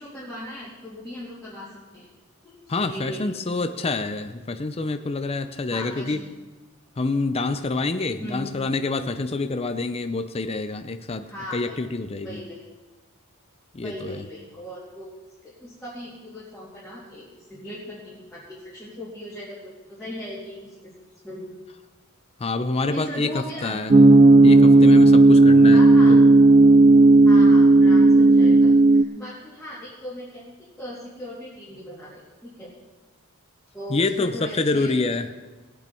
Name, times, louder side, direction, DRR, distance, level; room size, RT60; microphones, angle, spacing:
voice 1, 0.0-2.1 2.4-3.4 5.7-6.2 8.2-8.5 11.3-11.8 12.2-12.6 13.8-15.1 15.4-20.9 21.2-21.5 22.9-23.8 25.7-26.2 27.2-32.7 33.7-35.0, left 1 dB, 5° left, -10 dB, 3.0 m, -38 dB
voice 2, 2.7-6.2 7.0-12.4 13.7-14.3 22.4-23.9 24.4-25.8 26.1-26.2 33.9-35.3, left 3 dB, 25° left, 8 dB, 0.6 m, -27 dB
sound 1, 23.9-29.0, right 2 dB, 30° right, 0.4 m, -12 dB
19.5 x 8.7 x 4.5 m, 1.2 s
head